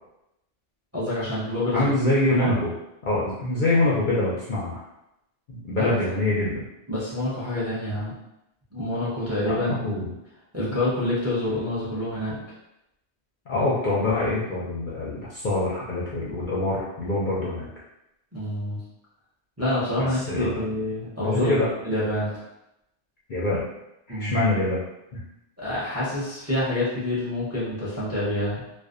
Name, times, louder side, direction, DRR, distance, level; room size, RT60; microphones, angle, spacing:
voice 1, 0.9-1.9 2.3-2.5 5.7-6.0 6.9-8.1 8.7-9.7 10.0-10.1 10.5-12.4 18.3-18.8 19.6-22.3 24.1-24.4 25.6-28.6, left 1 dB, 20° right, -8 dB, 0.5 m, -27 dB
voice 2, 1.7-2.7 3.0-4.8 5.5-6.6 9.5-10.1 13.5-17.7 20.0-20.6 21.2-21.7 23.3-23.6 24.1-24.8, left 2 dB, 60° left, -7 dB, 0.5 m, -25 dB
2.5 x 2.2 x 2.4 m, 0.87 s
omnidirectional pair, 1.2 m